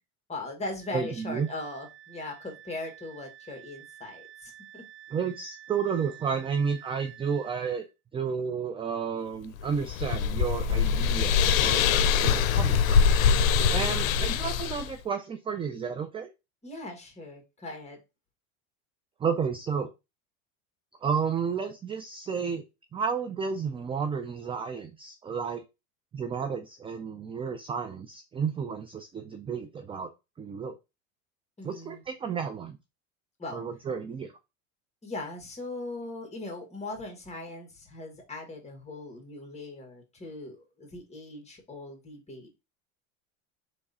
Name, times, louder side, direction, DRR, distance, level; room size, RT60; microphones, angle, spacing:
voice 1, 0.3-4.8 10.7-11.2 11.9-12.2 13.6-14.0 16.6-18.0 31.6-32.0 33.4-33.6 35.0-42.6, left 2 dB, 15° left, 3 dB, 1.8 m, -40 dB
Wind instrument woodwind instrument, 0.8-7.9, right 12 dB, 55° right, 1.0 m, -50 dB
voice 2, 0.9-1.5 5.1-7.9 8.1-13.1 13.7-16.3 19.2-19.9 21.0-22.6 22.9-25.6 26.1-30.1 30.4-30.7 31.6-32.8 33.5-34.3, right 6 dB, 15° right, 8 dB, 0.3 m, -32 dB
sound 1, 9.6-14.9, left 6 dB, 85° left, 0.6 m, -23 dB
3.6 x 3.2 x 4.1 m, 0.26 s
supercardioid pair, 100°, 39 cm